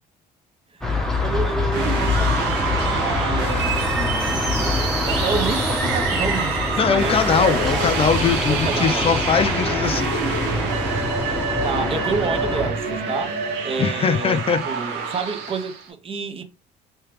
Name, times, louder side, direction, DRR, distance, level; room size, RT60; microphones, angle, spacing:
sound 1, 0.8-12.7, left 2 dB, 5° left, 0.7 m, -25 dB
voice 1, 1.2-7.2 8.5-9.1 11.6-16.4, right 5 dB, 35° right, 0.6 m, -29 dB
sound 2, 1.7-15.9, right 5 dB, 90° right, 0.8 m, -27 dB
voice 2, 6.8-10.2 13.8-14.6, left 6 dB, 35° left, 0.4 m, -21 dB
3.2 x 2.9 x 3.1 m
cardioid pair, 110°, 17 cm